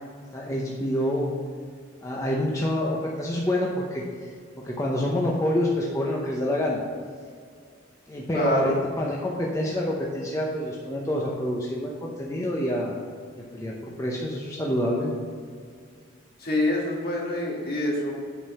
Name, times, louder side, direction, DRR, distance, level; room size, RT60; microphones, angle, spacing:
voice 1, 0.3-1.3 2.0-4.3 4.6-6.8 8.1-12.9 13.3-15.1, left 1 dB, 15° left, -3 dB, 0.8 m, -27 dB
voice 2, 8.3-8.7 16.4-18.1, left 1 dB, 50° left, -2 dB, 2.0 m, -26 dB
8.6 x 5.4 x 5.6 m, 2.1 s
head